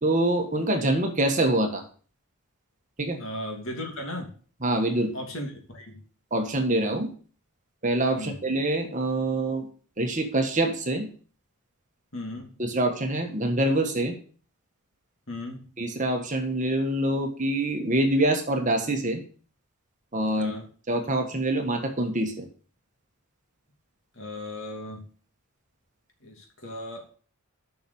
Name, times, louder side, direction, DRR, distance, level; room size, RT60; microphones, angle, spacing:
voice 1, 0.0-1.8 3.0-3.2 4.6-5.1 6.3-7.1 7.8-9.7 10.0-11.1 12.6-14.1 15.8-19.2 20.1-20.5 20.9-22.5, right 1 dB, 35° right, 4 dB, 1.5 m, -25 dB
voice 2, 3.2-4.3 5.1-6.0 8.2-8.4 12.1-12.6 15.3-15.7 20.4-20.7 24.1-25.0 26.2-27.1, left 1 dB, 60° left, 2 dB, 2.7 m, -36 dB
7.7 x 5.9 x 7.1 m, 0.42 s
head